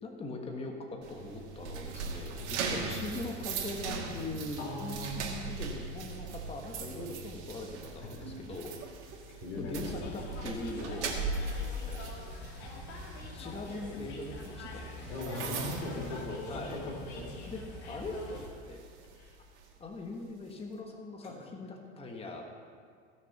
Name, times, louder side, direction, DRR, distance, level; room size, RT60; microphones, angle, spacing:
voice 1, 0.0-8.8 9.0-11.1 11.9-12.1 13.3-15.1 16.5-16.8 17.5-18.8 19.8-22.5, left 2 dB, 15° left, 2 dB, 1.4 m, -41 dB
sound 1, 1.0-16.9 17.3-17.5 18.0-19.7, right 4 dB, 75° right, 2.1 m, -39 dB
voice 2, 4.6-5.3 8.0-8.4 9.3-10.1 15.1-17.2 19.1-19.3 21.2-21.3, left 2 dB, 85° left, 0 dB, 3.3 m, -39 dB
sound 2, 7.3-7.4 7.6-8.3 8.5-8.6 8.8-8.9 9.1-9.2 9.4-9.5 9.7-15.9, right 9 dB, 40° right, 1.6 m, -49 dB
sound 3, 9.8-18.5, left 2 dB, 50° left, 2.3 m, -45 dB
16.0 x 6.6 x 5.9 m, 2.1 s
supercardioid pair, 115°, 34 cm